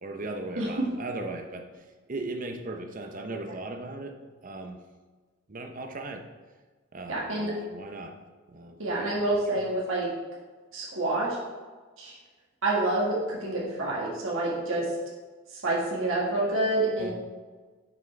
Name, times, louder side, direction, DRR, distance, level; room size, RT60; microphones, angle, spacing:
voice 1, 0.0-1.7 2.1-4.2 4.4-4.8 5.5-6.3 6.9-8.2 8.5-9.6 17.0-17.1, right 2 dB, 40° right, 5 dB, 0.8 m, -37 dB
voice 2, 0.6-0.9 7.1-7.5 8.8-10.1 10.7-11.4 12.0-12.1 12.6-14.9 15.6-17.1, right 2 dB, 70° right, -4 dB, 1.9 m, -27 dB
9.3 x 6.1 x 3.4 m, 1.4 s
head